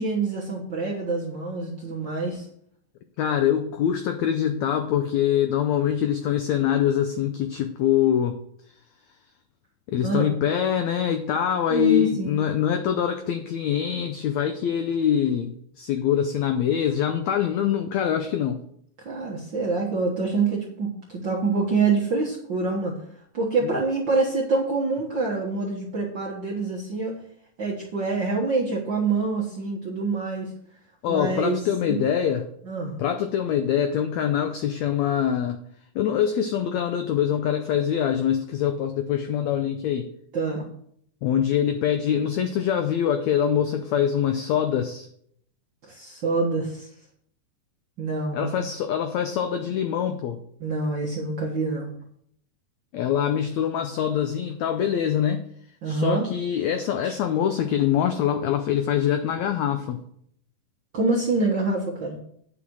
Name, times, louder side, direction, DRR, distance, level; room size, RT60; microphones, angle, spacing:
voice 1, 0.0-2.5 10.0-10.3 11.7-12.4 19.0-23.0 23.3-27.1 27.6-30.5 31.1-31.6 32.6-33.0 40.3-40.7 45.8-46.9 48.0-48.6 50.6-51.9 55.8-56.2 57.0-57.1 60.9-62.2, right 3 dB, 55° right, -3 dB, 1.3 m, -26 dB
voice 2, 3.2-8.4 9.9-18.6 23.6-23.7 31.0-32.5 33.0-35.6 35.9-40.1 41.2-45.1 48.3-50.4 52.9-55.5 55.8-60.0, left 9 dB, 80° left, 7 dB, 1.6 m, -24 dB
9.7 x 5.9 x 6.2 m, 0.68 s
omnidirectional pair, 4.0 m